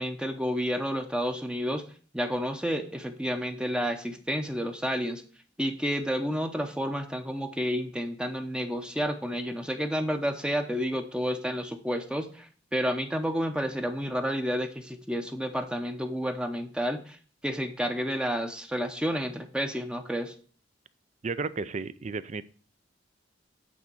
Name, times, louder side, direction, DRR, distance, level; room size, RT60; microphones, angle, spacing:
voice 1, 0.0-1.8 2.1-5.2 5.6-17.2 17.4-20.3, equal, 5° right, 6 dB, 0.7 m, -30 dB
voice 2, 21.2-22.5, right 4 dB, 35° right, 15 dB, 0.4 m, -33 dB
8.5 x 4.0 x 6.7 m, 0.41 s
head